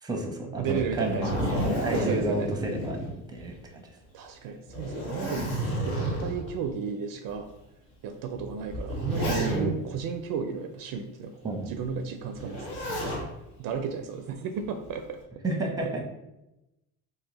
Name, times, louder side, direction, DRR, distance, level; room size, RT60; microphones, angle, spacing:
voice 1, 0.0-3.8 9.2-9.8 11.4-11.7 15.4-16.0, right 2 dB, 10° right, 2 dB, 0.7 m, -31 dB
voice 2, 0.6-1.6 1.9-2.5 4.1-7.5 8.0-13.1 13.6-15.2 15.8-15.9, right 6 dB, 55° right, 6 dB, 0.4 m, -33 dB
Zipper (clothing), 0.7-3.7 4.0-4.1 4.7-6.5 7.3-7.4 8.4-9.9 12.4-13.3 14.6-15.1, equal, 65° left, 1.5 m, -31 dB
2.8 x 2.7 x 3.8 m, 0.93 s
supercardioid pair, 95°, 40 cm